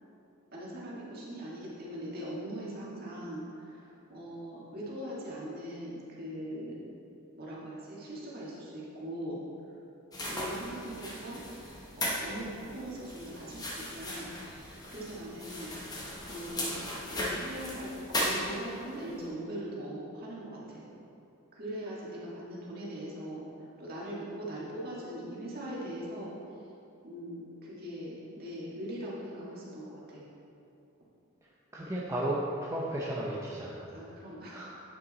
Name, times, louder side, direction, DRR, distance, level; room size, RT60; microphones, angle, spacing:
voice 1, 0.5-6.8 7.4-9.4 9.7-9.8 10.2-11.4 11.9-14.3 14.8-15.7 16.2-16.8 17.1-20.9 21.5-26.3 27.0-30.2 33.9-34.6, right 1 dB, 45° right, -6 dB, 1.8 m, -41 dB
sound 1, 10.1-18.9, left 1 dB, 20° left, 1.0 m, -37 dB
voice 2, 31.7-33.9 34.5-34.8, right 1 dB, 15° right, -5 dB, 0.6 m, -34 dB
8.8 x 5.8 x 4.0 m, 2.8 s
head